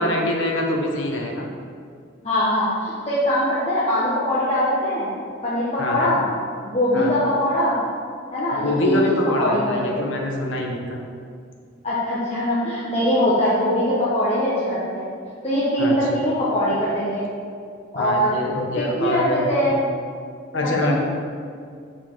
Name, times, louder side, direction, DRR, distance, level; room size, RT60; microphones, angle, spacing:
voice 1, 0.0-1.5 5.8-6.1 6.9-7.1 8.6-11.0 15.8-16.2 17.9-19.5 20.5-20.9, left 1 dB, 70° left, 0 dB, 1.0 m, -24 dB
voice 2, 2.2-5.1 5.4-6.2 6.6-7.8 8.3-9.0 9.4-9.9 11.8-15.1 15.4-17.2 17.9-19.8 20.6-20.9, equal, 30° left, -10 dB, 1.0 m, -22 dB
5.9 x 4.5 x 4.6 m, 2.2 s
head